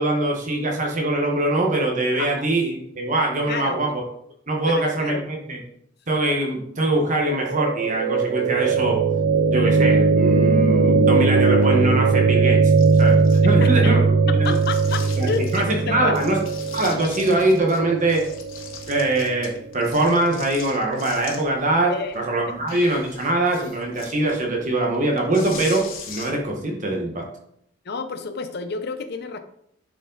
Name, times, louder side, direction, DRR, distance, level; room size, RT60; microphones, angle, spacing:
voice 1, 0.0-4.0 4.5-5.6 6.1-9.0 9.5-14.0 14.2-14.5 15.2-15.3 15.5-16.4 16.7-18.2 18.9-27.2, right 2 dB, 40° right, 0 dB, 1.3 m, -23 dB
voice 2, 3.5-3.8 4.6-5.2 13.6-13.7 14.4-15.5 15.9-16.2 21.9-22.1 27.8-29.4, left 5 dB, 55° left, 7 dB, 0.7 m, -29 dB
sound 1, 7.4-19.4, right 4 dB, 80° right, 0.6 m, -19 dB
sound 2, 12.8-13.8 14.4-15.8 16.1-17.8 18.1-21.6 22.0-26.5, left 6 dB, 75° left, 1.7 m, -40 dB
10.5 x 5.1 x 4.0 m, 0.73 s
head